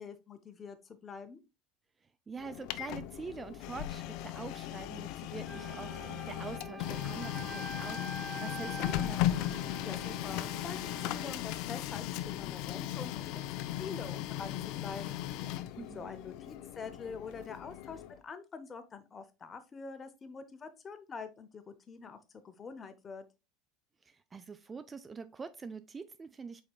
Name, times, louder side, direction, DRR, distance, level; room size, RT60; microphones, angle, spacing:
voice 1, 0.0-1.4 9.8-13.3 13.8-15.2 15.7-23.2, left 5 dB, 30° left, 0.8 m, -45 dB
voice 2, 2.3-9.5 15.8-16.1 24.0-26.6, right 5 dB, 25° right, 0.4 m, -45 dB
Printer, 2.4-18.2, left 13 dB, 65° left, 0.4 m, -37 dB
Wind instrument woodwind instrument, 5.4-11.3, right 1 dB, 5° right, 1.5 m, -45 dB
5.1 x 4.2 x 2.4 m
supercardioid pair, 95°, 0 cm